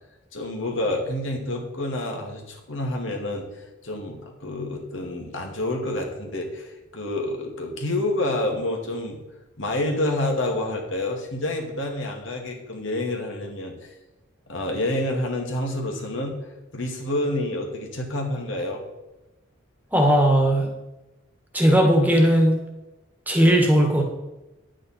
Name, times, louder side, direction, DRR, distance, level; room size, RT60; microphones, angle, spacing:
voice 1, 0.3-9.2 9.6-13.9 14.5-16.4 16.7-18.8, left 1 dB, 70° left, 1 dB, 2.4 m, -28 dB
voice 2, 19.9-20.7 21.5-22.6 23.3-24.0, equal, 10° right, 2 dB, 1.7 m, -17 dB
10.5 x 8.8 x 4.4 m, 1.0 s
head